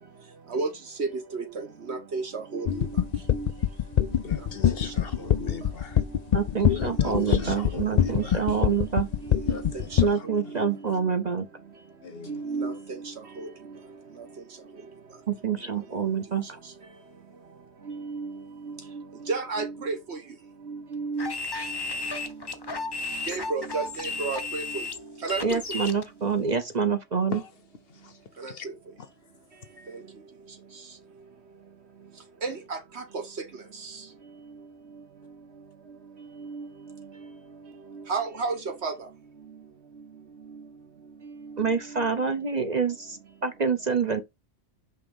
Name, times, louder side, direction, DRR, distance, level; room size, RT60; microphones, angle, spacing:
voice 1, 1.0-2.7 3.3-3.5 5.4-5.5 7.3-7.5 9.4-10.0 12.3-12.8 13.4-13.5 17.9-18.3 18.7-18.8 19.3-20.2 20.7-21.3 23.3-24.6 25.2-25.6 28.4-28.5 32.4-32.5 36.4-36.6 38.1-38.9, right 4 dB, 65° right, 1.6 m, -31 dB
sound 1, 2.6-10.1, left 10 dB, 75° left, 0.3 m, -23 dB
voice 2, 4.2-6.0 6.7-8.5 9.5-11.0 12.0-12.5 27.3-27.5 27.9-28.7 29.0-29.1 29.6-30.0, left 6 dB, 55° left, 0.9 m, -40 dB
voice 3, 6.3-9.1 10.0-11.5 15.3-16.6 25.4-27.4 41.6-44.2, right 6 dB, 40° right, 0.8 m, -27 dB
sound 2, 21.2-26.0, left 3 dB, 25° left, 0.6 m, -34 dB
5.4 x 3.5 x 5.2 m
omnidirectional pair, 1.2 m